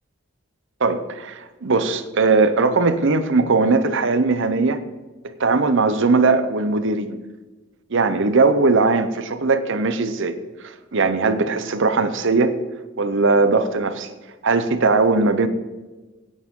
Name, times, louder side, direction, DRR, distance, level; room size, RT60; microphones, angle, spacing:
voice 1, 0.8-4.8 5.4-7.2 7.9-10.4 10.6-12.6 13.0-14.1 14.4-15.5, right 3 dB, 60° right, 11 dB, 0.8 m, -19 dB
16.5 x 8.6 x 3.8 m, 1.2 s
head